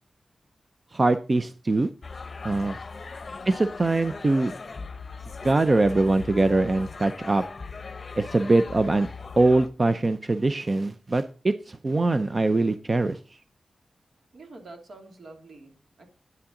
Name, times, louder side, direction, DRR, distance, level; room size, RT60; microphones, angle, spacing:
voice 1, 0.9-1.9 2.4-2.8 3.5-4.5 5.4-7.4 8.2-9.1 9.4-13.2, right 2 dB, 35° right, 10 dB, 0.6 m, -22 dB
sound 1, 2.0-9.7, left 4 dB, 45° left, 0.8 m, -39 dB
voice 2, 14.3-16.1, right 2 dB, 70° right, 3 dB, 2.7 m, -47 dB
9.4 x 8.7 x 3.8 m, 0.36 s
wide cardioid pair, 85°, 0 cm